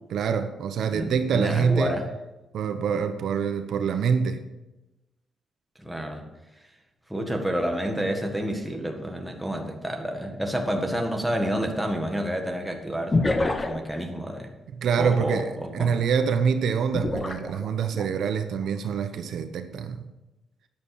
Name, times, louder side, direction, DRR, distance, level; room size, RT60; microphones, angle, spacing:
voice 1, 0.1-2.0 2.5-4.4 14.8-20.1, right 6 dB, 70° right, 8 dB, 1.0 m, -25 dB
voice 2, 0.9-2.1 5.8-6.3 7.1-13.3 13.7-14.5 15.0-15.9, equal, 5° right, 2 dB, 1.6 m, -29 dB
sound 1, 10.2-10.3 13.1-14.0 16.9-18.1 18.6-18.9, left 2 dB, 20° left, 0.9 m, -26 dB
12.5 x 9.4 x 4.8 m, 1.0 s
cardioid pair, 150°, 0 cm